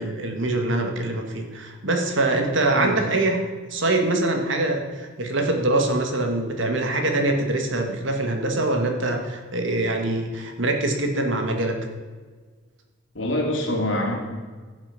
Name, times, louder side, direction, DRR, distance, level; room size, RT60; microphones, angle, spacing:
voice 1, 0.0-3.4 3.7-11.7, right 2 dB, 65° right, 3 dB, 1.9 m, -24 dB
voice 2, 13.1-14.1, left 1 dB, 60° left, 0 dB, 2.9 m, -25 dB
15.0 x 7.4 x 5.9 m, 1.4 s
head